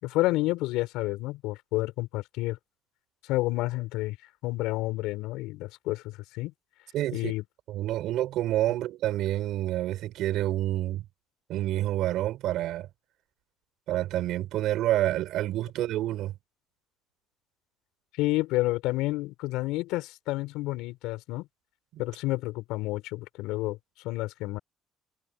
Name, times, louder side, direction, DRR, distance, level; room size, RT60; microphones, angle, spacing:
voice 1, 0.0-2.6 3.2-4.2 4.4-6.5 7.1-7.4 18.2-21.5 22.0-23.8 24.0-24.6, left 19 dB, 90° left, 5.8 m, -30 dB
voice 2, 6.9-7.3 7.7-11.0 11.5-12.9 13.9-16.3 21.9-22.0, right 14 dB, 70° right, 5.6 m, -28 dB
cardioid pair, 110°, 0 cm